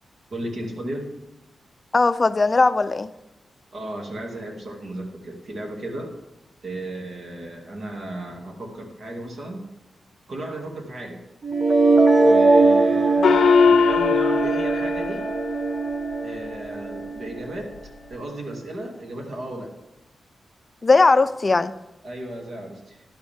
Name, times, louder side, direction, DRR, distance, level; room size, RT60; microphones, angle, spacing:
voice 1, 0.3-1.1 3.7-6.2 6.6-9.7 10.3-11.2 12.2-15.3 16.2-17.8 18.1-19.8 22.0-23.0, right 1 dB, 60° right, 1 dB, 2.3 m, -34 dB
voice 2, 1.9-3.1 20.8-21.7, left 3 dB, 30° left, 13 dB, 0.5 m, -18 dB
sound 1, 11.4-17.4, right 3 dB, 35° right, 0.8 m, -20 dB
Gong, 13.2-16.1, left 6 dB, 80° left, 0.5 m, -20 dB
11.5 x 11.5 x 3.5 m, 0.97 s
wide cardioid pair, 115°, 0 cm